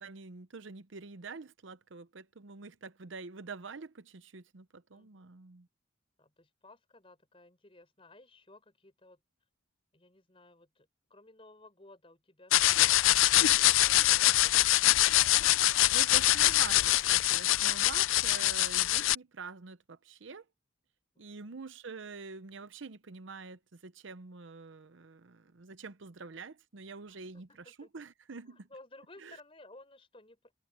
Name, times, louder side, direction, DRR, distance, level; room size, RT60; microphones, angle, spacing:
voice 1, 0.0-5.7 15.9-20.4 21.2-28.7 29.2-29.4, right 4 dB, 70° right, 0.8 m, -46 dB
voice 2, 4.9-5.3 6.2-9.2 9.9-15.6 21.1-21.6 27.1-27.9 28.5-30.4, left 2 dB, 30° left, 4.8 m, -57 dB
sound 1, 12.5-19.1, left 15 dB, 80° left, 0.4 m, -24 dB
head